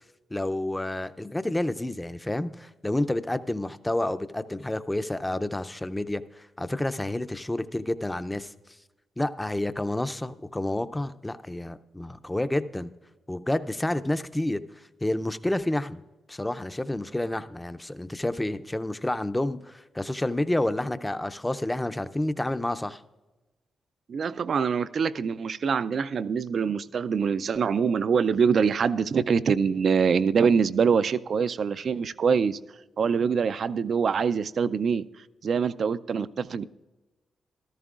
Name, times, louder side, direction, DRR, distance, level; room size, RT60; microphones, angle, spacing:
voice 1, 0.3-8.5 9.2-12.9 13.3-14.6 15.0-16.0 16.3-23.0, left 1 dB, 10° left, 12 dB, 0.5 m, -29 dB
voice 2, 24.1-32.6 33.0-35.0 35.4-36.6, right 6 dB, 60° right, 16 dB, 0.4 m, -24 dB
14.5 x 13.5 x 2.4 m, 1.1 s
cardioid pair, 90°, 0 cm